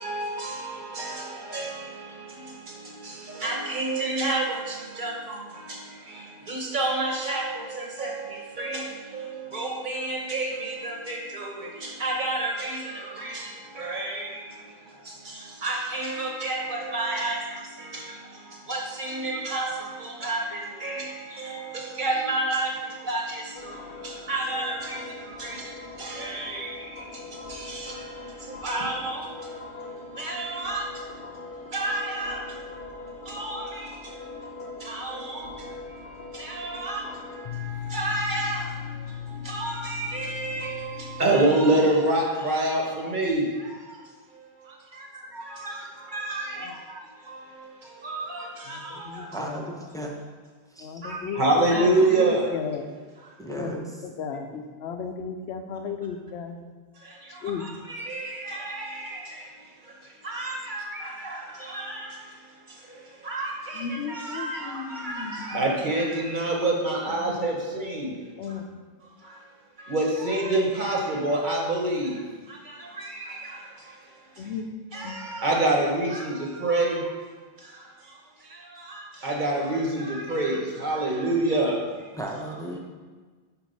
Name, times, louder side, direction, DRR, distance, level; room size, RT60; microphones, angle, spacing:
voice 1, 0.0-44.0 44.3-49.4 51.0-52.6 53.2-53.3 56.9-68.1 68.4-68.6 69.0-69.5 69.8-74.5 74.9-77.2 77.6-82.1, right 2 dB, 50° right, -1 dB, 1.1 m, -29 dB
sound 1, 23.5-41.6, left 5 dB, 60° left, 0.8 m, -40 dB
voice 2, 48.7-49.6 50.8-51.9 52.2-52.8 53.5-53.8 54.2-54.6 54.8-56.6 57.4-57.6 63.7-65.6 67.3-67.4 68.4-68.6 74.4-74.7 75.0-75.2, left 6 dB, 90° left, 6 dB, 0.9 m, -34 dB
voice 3, 49.3-50.1 50.7-51.0 53.4-54.1 54.5-54.6 82.1-82.8, right 1 dB, 5° left, -1 dB, 0.4 m, -35 dB
4.5 x 4.5 x 5.3 m, 1.4 s
omnidirectional pair, 1.1 m